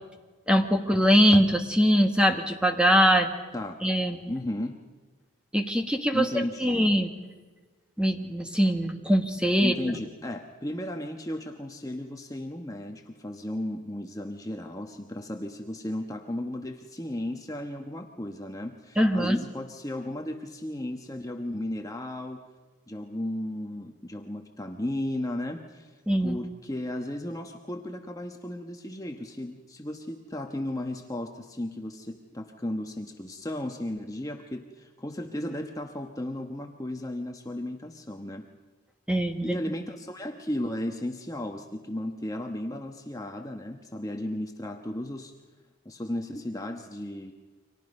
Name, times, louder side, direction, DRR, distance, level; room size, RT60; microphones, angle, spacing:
voice 1, 0.5-3.3 3.8-4.2 5.5-7.1 8.0-9.7 19.0-19.4 26.1-26.4 39.1-39.6, equal, 5° right, 5 dB, 1.4 m, -22 dB
voice 2, 4.3-4.8 6.1-6.9 9.6-22.4 22.9-38.5 39.4-45.3 45.8-47.3, left 1 dB, 15° left, 3 dB, 1.1 m, -35 dB
29.5 x 25.0 x 5.4 m, 1.3 s
head